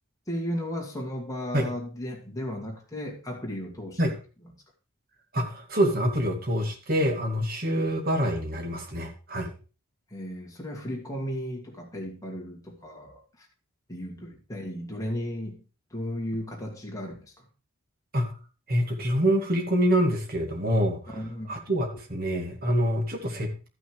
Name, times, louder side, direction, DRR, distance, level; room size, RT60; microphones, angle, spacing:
voice 1, 0.3-4.0 10.1-13.5 13.9-15.6 15.9-17.4 21.1-21.6, equal, 15° left, 2.4 m, -35 dB
voice 2, 5.3-9.5 18.1-18.3 18.7-21.1 21.5-23.7, equal, 40° right, 2.1 m, -26 dB
13.0 x 6.1 x 4.7 m
head